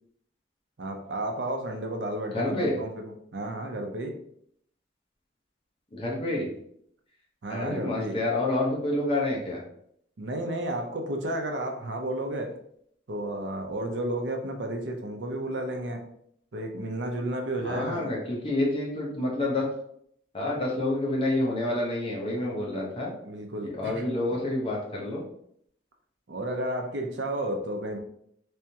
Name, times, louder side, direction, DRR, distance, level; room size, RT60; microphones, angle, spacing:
voice 1, 0.8-4.2 7.4-8.2 10.2-12.6 13.1-16.1 16.5-18.1 22.7-22.9 23.2-24.0 24.3-24.4 26.3-28.0, right 1 dB, 85° right, 3 dB, 0.6 m, -32 dB
voice 2, 2.3-2.8 5.9-6.5 7.5-9.6 17.6-19.6 20.3-23.1 23.8-25.2, left 2 dB, 30° left, -3 dB, 1.0 m, -28 dB
3.5 x 3.3 x 2.9 m, 0.69 s
head